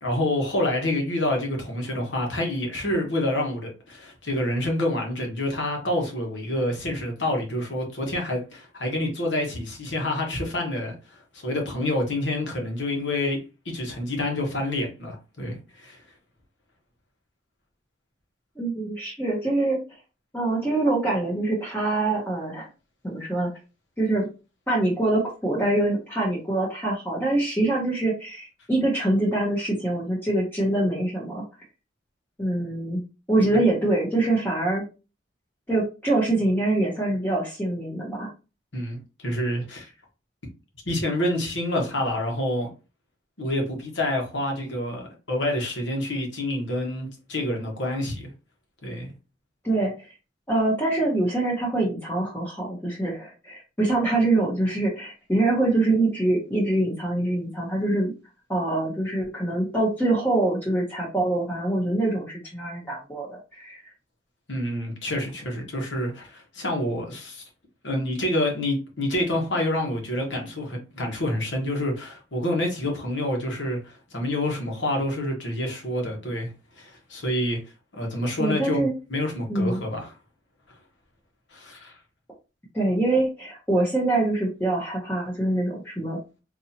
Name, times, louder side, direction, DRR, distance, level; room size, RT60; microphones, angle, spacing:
voice 1, 0.0-13.4 13.6-16.0 38.7-39.9 40.8-42.7 43.4-48.3 48.8-49.1 64.5-67.4 67.8-77.6 77.9-80.1 81.5-81.9, left 1 dB, 75° left, 1.2 m, -28 dB
voice 2, 18.6-19.8 20.3-22.7 23.0-23.5 24.0-24.3 24.7-31.4 32.4-33.0 33.3-34.8 35.7-38.3 49.6-50.1 50.5-58.1 58.5-63.8 78.4-78.9 79.5-79.8 82.7-86.2, right 2 dB, 10° left, 0.8 m, -24 dB
4.0 x 2.7 x 2.8 m
head